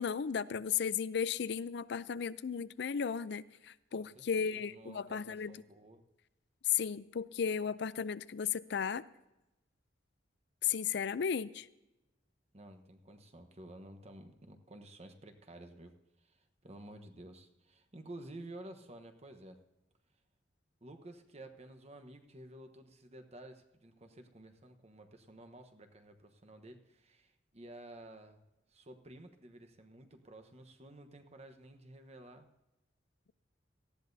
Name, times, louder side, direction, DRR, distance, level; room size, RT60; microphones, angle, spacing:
voice 1, 0.0-5.6 6.6-9.0 10.6-11.7, left 7 dB, 65° left, 17 dB, 0.4 m, -35 dB
voice 2, 3.9-6.0 12.5-19.6 20.8-28.4 28.7-32.5, right 1 dB, 35° right, 7 dB, 1.1 m, -52 dB
18.5 x 14.0 x 2.7 m, 0.96 s
head